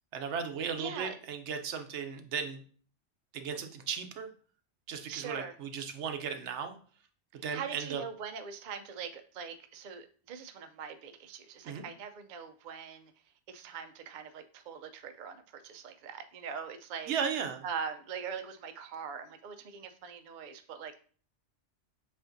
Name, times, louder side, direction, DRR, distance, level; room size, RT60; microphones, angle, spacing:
voice 1, 0.1-2.6 3.3-4.3 4.9-6.8 7.4-8.0 11.6-11.9 17.1-17.6, right 7 dB, 75° right, 7 dB, 0.9 m, -36 dB
voice 2, 0.8-1.2 5.1-5.5 7.5-13.1 13.5-17.1 17.6-21.0, right 6 dB, 60° right, 7 dB, 0.5 m, -42 dB
7.4 x 2.5 x 2.6 m, 0.43 s
omnidirectional pair, 1.2 m